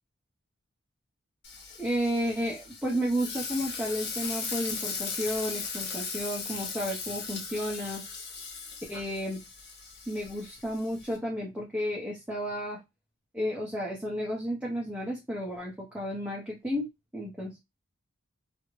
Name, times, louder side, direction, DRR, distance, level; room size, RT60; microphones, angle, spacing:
Frying (food), 1.4-11.2, left 5 dB, 50° left, 0.7 m, -38 dB
voice 1, 1.8-8.0 8.9-9.4 10.1-12.8 13.3-16.9 17.1-17.6, equal, 5° right, -4 dB, 0.6 m, -32 dB
2.4 x 2.1 x 3.0 m, 0.21 s
head